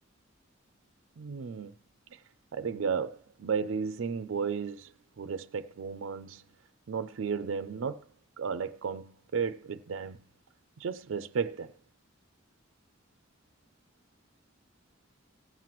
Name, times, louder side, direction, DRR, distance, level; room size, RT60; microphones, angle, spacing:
voice 1, 1.2-1.7 2.1-2.2 2.5-6.4 6.9-8.1 8.4-10.2 10.8-11.7, right 6 dB, 75° right, 0.4 m, -34 dB
17.0 x 7.6 x 3.0 m
head